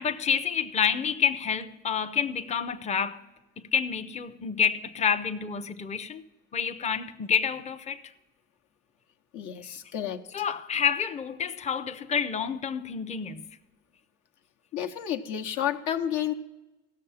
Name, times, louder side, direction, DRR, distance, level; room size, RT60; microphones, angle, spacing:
voice 1, 0.0-3.2 3.6-6.2 6.5-8.0 10.3-13.5, left 7 dB, 20° left, 0.6 m, -28 dB
voice 2, 9.3-10.2 14.7-16.3, left 10 dB, 70° left, 1.0 m, -30 dB
16.5 x 6.6 x 5.5 m
cardioid pair, 100°, 31 cm